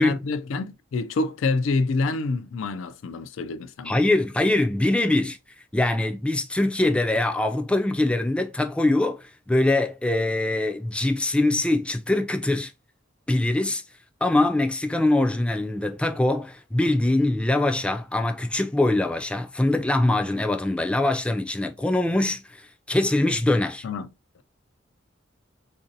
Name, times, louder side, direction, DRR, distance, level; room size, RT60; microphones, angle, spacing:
voice 1, 0.0-4.1 23.8-24.1, left 3 dB, 85° left, 0.4 m, -27 dB
voice 2, 3.8-5.4 5.7-12.7 13.3-13.8 14.2-23.8, left 2 dB, 5° left, 0.3 m, -23 dB
3.8 x 2.6 x 2.6 m
head